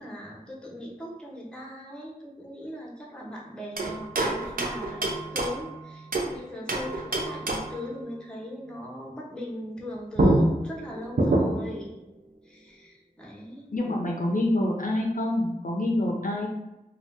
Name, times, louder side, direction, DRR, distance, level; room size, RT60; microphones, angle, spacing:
voice 1, 0.0-12.1 12.4-13.7, left 1 dB, 5° left, -4 dB, 0.8 m, -39 dB
sound 1, 3.8-6.3 6.7-7.9 9.8-9.9 10.2-11.8, right 1 dB, 70° right, 0.5 m, -26 dB
voice 2, 13.7-16.5, left 1 dB, 60° left, -1 dB, 0.5 m, -26 dB
2.6 x 2.2 x 3.4 m, 0.95 s
wide cardioid pair, 45°, 15 cm